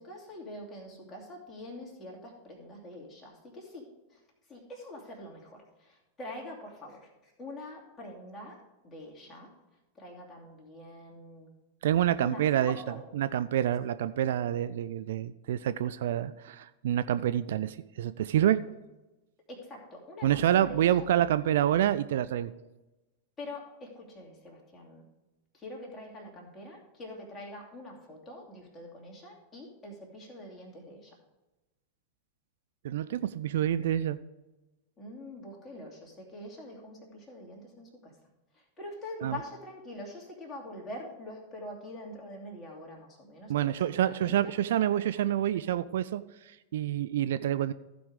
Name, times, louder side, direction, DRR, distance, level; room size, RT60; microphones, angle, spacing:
voice 1, 0.0-4.2 4.5-9.5 9.9-11.5 12.2-13.0 19.5-21.1 23.4-25.0 25.5-31.2 35.0-38.2 38.5-44.5, left 1 dB, 20° left, -2 dB, 2.7 m, -45 dB
voice 2, 11.8-12.8 13.2-18.6 20.2-22.5 32.8-34.2 39.2-39.4 43.5-47.7, right 11 dB, 60° right, 13 dB, 0.3 m, -27 dB
15.0 x 5.2 x 4.9 m, 1.0 s
figure-of-eight pair, 90°, 0 cm